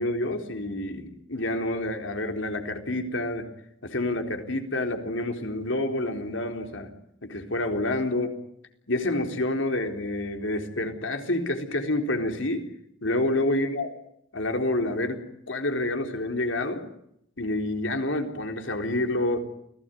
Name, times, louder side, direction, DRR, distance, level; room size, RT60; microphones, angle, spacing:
voice 1, 0.0-3.4 3.8-6.9 7.2-8.3 8.9-12.7 13.0-13.9 14.3-15.2 15.5-16.9 17.4-19.4, left 1 dB, 75° left, 5 dB, 3.9 m, -28 dB
29.0 x 18.0 x 9.2 m, 0.76 s
head